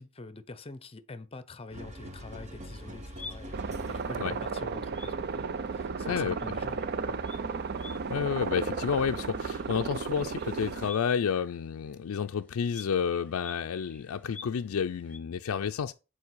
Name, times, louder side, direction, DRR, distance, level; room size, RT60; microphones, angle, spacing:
voice 1, 0.0-5.4 5.7-6.8 7.1-7.5 8.6-8.7, left 3 dB, 25° left, 0.7 m, -45 dB
sound 1, 1.7-4.4, equal, 30° right, 0.9 m, -44 dB
sound 2, 2.8-15.2, left 4 dB, 5° left, 1.6 m, -52 dB
sound 3, 3.5-10.9, right 4 dB, 45° right, 0.4 m, -34 dB
voice 2, 6.1-6.4 8.1-15.9, left 7 dB, 75° left, 0.4 m, -30 dB
7.1 x 4.5 x 4.6 m
head